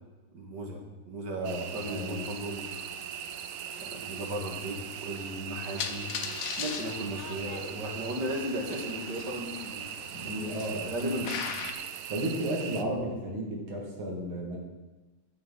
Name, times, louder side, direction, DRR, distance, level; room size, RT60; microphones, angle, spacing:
voice 1, 0.3-0.8 1.1-2.9 3.8-6.1 6.6-9.8 10.2-11.8 12.7-13.0, right 1 dB, 55° right, 1 dB, 2.4 m, -36 dB
voice 2, 1.4-2.3 10.1-11.2 12.1-14.6, right 1 dB, 70° right, -2 dB, 3.1 m, -34 dB
sound 1, 1.4-12.8, right 9 dB, 85° right, 1.6 m, -40 dB
sound 2, 1.8-9.4, right 2 dB, 20° right, 2.0 m, -51 dB
sound 3, 5.8-11.7, left 6 dB, 60° left, 0.9 m, -40 dB
11.0 x 7.8 x 5.6 m, 1.2 s
omnidirectional pair, 2.3 m